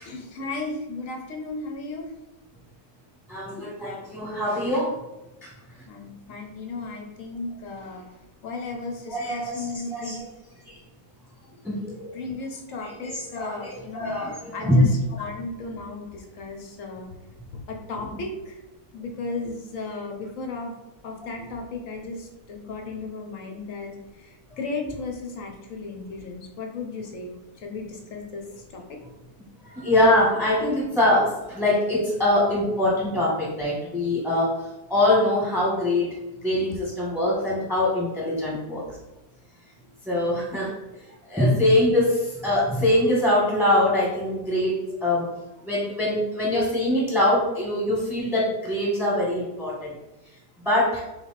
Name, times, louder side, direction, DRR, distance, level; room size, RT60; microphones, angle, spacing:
voice 1, 0.0-2.1 5.9-8.1 8.4-10.3 12.1-14.1 14.5-14.9 15.2-17.1 17.5-18.6 18.9-20.7 21.0-28.4 28.7-29.0, left 3 dB, 65° left, 2 dB, 0.9 m, -35 dB
voice 2, 3.3-5.0 5.4-5.5 9.1-10.2 10.7-10.8 11.6-12.2 12.8-15.0 18.1-18.2 29.6-39.0 40.0-40.7 41.3-45.3 45.6-49.9 50.6-51.0, left 1 dB, ahead, -5 dB, 1.1 m, -23 dB
3.4 x 3.3 x 4.0 m, 1.0 s
omnidirectional pair, 1.8 m